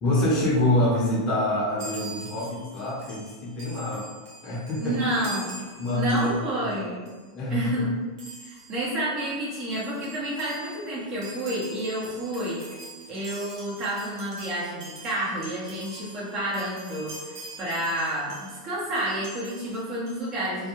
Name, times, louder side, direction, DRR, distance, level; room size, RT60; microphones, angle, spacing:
voice 1, 0.0-4.0 4.4-5.0 5.8-6.3 6.6-6.8 7.3-7.8, left 1 dB, 35° left, -5 dB, 0.8 m, -26 dB
Chime, 1.8-6.8 7.1-7.3 8.2-8.8 9.4-9.5 9.6-18.6 19.0-20.2, right 2 dB, 65° right, 0.9 m, -44 dB
voice 2, 4.8-5.6 5.9-7.1 7.5-7.9 8.4-12.6 13.1-20.7, right 1 dB, 35° right, -7 dB, 1.2 m, -30 dB
2.5 x 2.3 x 3.0 m, 1.4 s
hypercardioid pair, 125°, 2 cm